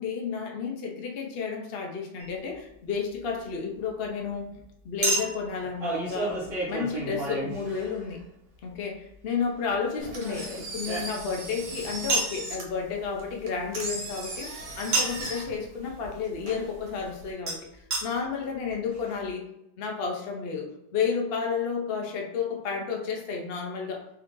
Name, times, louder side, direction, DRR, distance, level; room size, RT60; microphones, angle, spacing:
voice 1, 0.0-4.5 4.8-6.4 6.7-8.2 8.6-17.6 18.0-19.4 19.8-24.0, left 6 dB, 90° left, 1 dB, 0.5 m, -31 dB
Chink clink, 2.2-2.4 5.0-8.2 9.8-11.5 12.1-12.4 14.9-15.3 17.5-17.6 17.9-18.0 18.7-18.8 18.9-19.0, right 2 dB, 50° right, 1.3 m, -30 dB
Engine, 10.0-17.3, right 2 dB, 80° right, 1.7 m, -39 dB
4.1 x 2.6 x 3.6 m, 0.83 s
omnidirectional pair, 2.0 m